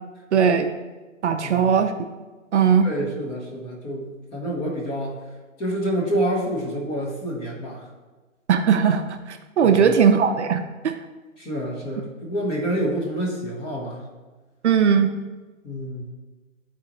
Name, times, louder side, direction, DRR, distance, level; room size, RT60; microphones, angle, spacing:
voice 1, 0.3-0.7 1.2-2.1 2.5-2.9 8.5-9.0 9.3-11.0 14.6-15.1, right 7 dB, 55° right, 7 dB, 0.6 m, -19 dB
voice 2, 1.4-1.7 2.8-5.2 5.6-7.9 9.6-9.9 11.4-14.0 15.6-16.0, right 1 dB, 15° left, -3 dB, 1.1 m, -28 dB
11.5 x 4.3 x 3.0 m, 1.3 s
hypercardioid pair, 150°, 40 cm